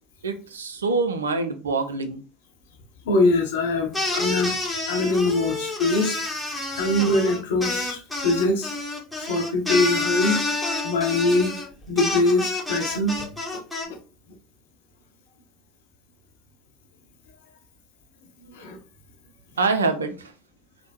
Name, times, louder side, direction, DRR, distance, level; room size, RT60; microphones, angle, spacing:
voice 1, 0.2-2.2 19.6-20.3, right 4 dB, 80° right, 9 dB, 0.4 m, -25 dB
voice 2, 3.1-4.6 4.9-8.7 9.3-11.5 11.9-13.2 13.9-14.0 18.5-18.8, left 2 dB, 65° left, 3 dB, 0.8 m, -23 dB
sound 1, 3.9-13.9, left 2 dB, ahead, 1.1 m, -28 dB
3.3 x 2.1 x 2.8 m, 0.36 s
figure-of-eight pair, 75°, 0 cm